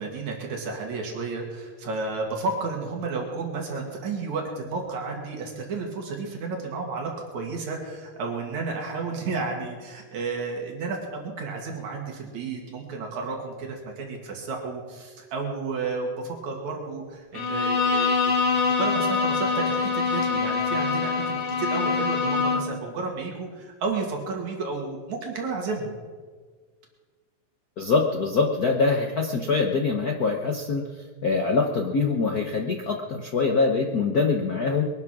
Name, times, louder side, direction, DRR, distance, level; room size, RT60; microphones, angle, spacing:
voice 1, 0.0-18.1 18.5-26.0, right 4 dB, 75° right, 0 dB, 3.3 m, -32 dB
Bowed string instrument, 17.3-22.8, left 4 dB, 60° left, 2.3 m, -24 dB
voice 2, 27.8-30.8 31.2-34.8, left 4 dB, 80° left, 1 dB, 0.8 m, -24 dB
21.5 x 9.6 x 6.1 m, 1.6 s
omnidirectional pair, 3.3 m